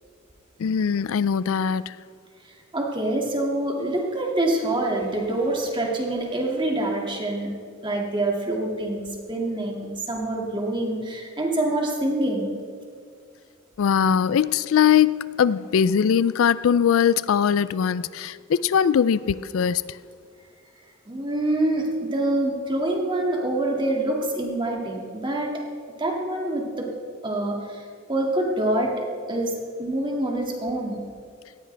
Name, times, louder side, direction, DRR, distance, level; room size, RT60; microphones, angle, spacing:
voice 1, 0.6-2.0 13.8-20.0, left 7 dB, 80° left, 0.4 m, -21 dB
voice 2, 2.7-7.5 7.8-12.5 21.1-25.6 26.0-26.9 27.2-27.8 28.1-29.5 29.8-31.0, right 1 dB, 25° right, 2.1 m, -26 dB
18.0 x 14.5 x 3.4 m
head